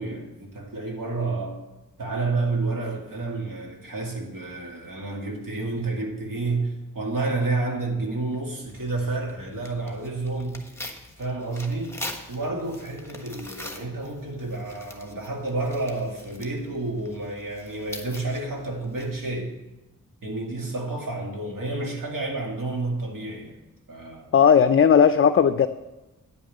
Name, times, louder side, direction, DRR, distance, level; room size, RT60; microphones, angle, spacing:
voice 1, 0.0-1.6 2.0-10.6 11.2-12.0 12.3-19.5 20.2-23.6 23.9-24.3, right 3 dB, 75° right, -1 dB, 2.2 m, -30 dB
Tearing, 8.7-19.4, left 1 dB, 10° left, 1.3 m, -43 dB
voice 2, 24.3-25.7, left 7 dB, 40° left, 10 dB, 0.4 m, -16 dB
9.7 x 5.3 x 7.6 m, 1.0 s
wide cardioid pair, 80°, 33 cm